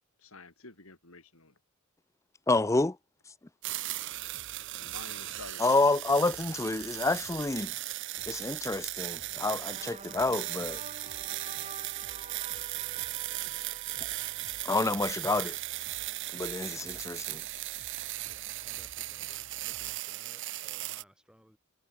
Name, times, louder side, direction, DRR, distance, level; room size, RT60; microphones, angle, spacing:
voice 1, 0.2-1.5 4.7-5.6, left 3 dB, 70° left, 4.0 m, -49 dB
voice 2, 2.5-3.0 5.6-7.7 8.3-10.8 14.6-15.6 16.3-17.4, left 2 dB, 15° left, 0.5 m, -28 dB
sound 1, 3.6-21.0, right 16 dB, 55° right, 0.6 m, -37 dB
sound 2, 4.1-20.0, left 1 dB, 40° left, 2.3 m, -58 dB
sound 3, 9.3-15.7, right 5 dB, 30° right, 4.8 m, -49 dB
voice 3, 18.2-21.6, equal, 5° right, 5.4 m, -61 dB
head